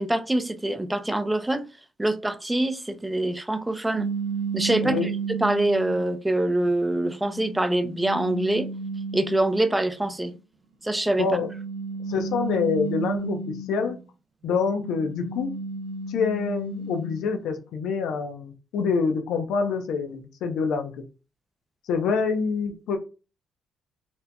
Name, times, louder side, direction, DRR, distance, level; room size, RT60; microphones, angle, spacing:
voice 1, 0.0-1.6 2.0-4.1 4.5-8.7 9.1-10.3 10.8-11.3, right 1 dB, 10° right, 0.5 m, -25 dB
sound 1, 3.9-6.1 6.8-9.9 11.0-14.0 14.4-17.4, right 4 dB, 75° right, 0.5 m, -33 dB
voice 2, 12.1-14.0 14.4-15.6 16.1-20.9 21.9-23.0, left 5 dB, 85° left, 0.6 m, -26 dB
4.2 x 2.6 x 2.2 m
cardioid pair, 90°, 0 cm